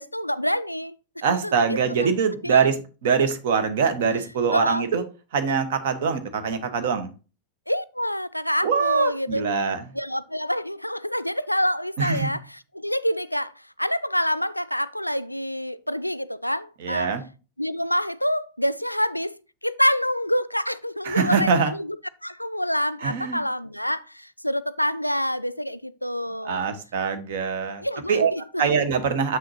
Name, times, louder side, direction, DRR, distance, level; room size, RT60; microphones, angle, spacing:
voice 1, 0.0-2.1 2.4-2.6 4.5-4.9 7.7-9.4 9.9-13.5 13.8-17.1 17.6-19.4 19.6-22.0 22.2-26.7 27.8-28.7, equal, 90° left, 0.3 m, -27 dB
voice 2, 1.2-5.0 5.3-7.1 8.6-9.8 12.0-12.3 16.8-17.2 21.0-21.7 23.0-23.4 26.4-27.8 28.1-28.3 28.6-29.4, right 6 dB, 55° right, 1.2 m, -23 dB
7.3 x 6.3 x 2.8 m
figure-of-eight pair, 90°, 0 cm